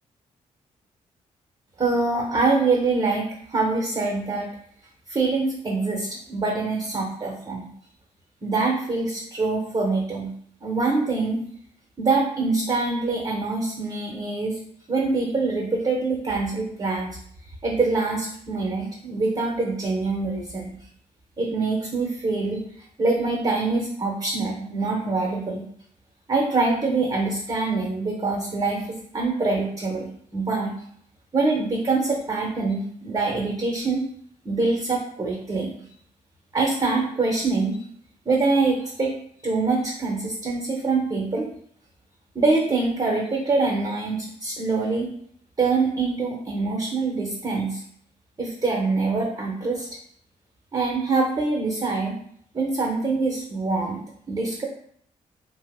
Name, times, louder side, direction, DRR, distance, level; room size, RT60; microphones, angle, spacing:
voice 1, 1.8-4.6 5.1-7.7 8.4-10.3 10.6-11.4 12.0-14.6 14.9-17.1 17.6-20.8 21.4-22.6 23.0-25.7 26.3-30.8 31.3-34.0 34.4-35.9 36.5-37.8 38.2-39.1 39.4-41.5 42.3-45.1 45.6-47.8 48.4-49.9 50.7-52.1 52.5-54.0 54.3-54.6, right 3 dB, 25° right, -1 dB, 0.9 m, -24 dB
2.7 x 2.1 x 3.5 m, 0.64 s
supercardioid pair, 50°, 15 cm